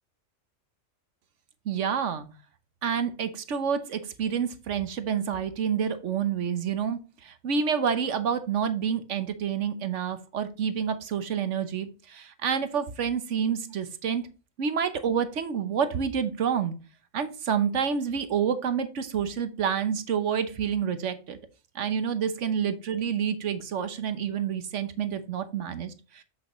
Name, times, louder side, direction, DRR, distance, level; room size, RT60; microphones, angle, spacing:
voice 1, 1.6-2.3 2.8-14.3 14.6-16.7 17.1-21.4 21.7-26.2, right 7 dB, 65° right, 10 dB, 1.2 m, -28 dB
7.8 x 6.6 x 3.1 m, 0.32 s
omnidirectional pair, 1.4 m